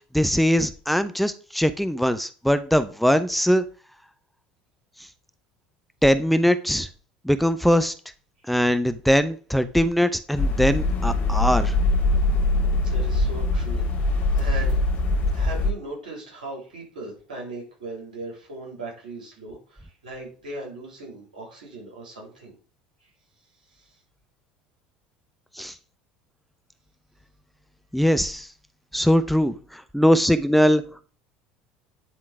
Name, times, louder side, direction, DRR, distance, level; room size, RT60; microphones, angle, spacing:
voice 1, 0.1-3.6 6.0-6.9 7.3-7.9 8.5-11.7 25.6-25.7 27.9-28.5 28.9-30.8, equal, ahead, 10 dB, 0.7 m, -21 dB
sound 1, 10.3-15.7, left 2 dB, 50° left, 2.0 m, -22 dB
voice 2, 12.8-14.8 15.3-22.5 23.0-23.1 23.6-24.0 25.6-25.7, right 2 dB, 85° right, -2 dB, 3.4 m, -38 dB
10.0 x 3.8 x 4.7 m, 0.38 s
hypercardioid pair, 65°, 4 cm